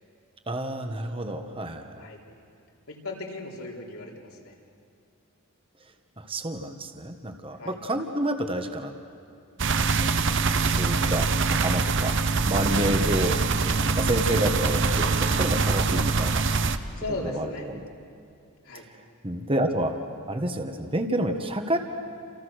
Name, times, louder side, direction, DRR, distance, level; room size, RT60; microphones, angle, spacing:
voice 1, 0.5-2.0 6.2-8.9 9.7-12.1 12.4-16.5 17.2-17.8 18.7-18.9 19.2-20.0 20.3-21.8, right 1 dB, 25° right, 5 dB, 1.4 m, -29 dB
voice 2, 2.9-4.5 7.6-7.8 17.0-17.7 18.6-18.9, left 2 dB, 75° left, -1 dB, 4.0 m, -36 dB
sound 1, 9.6-16.8, right 4 dB, 55° right, 1.0 m, -24 dB
29.5 x 28.5 x 6.5 m, 2.4 s
head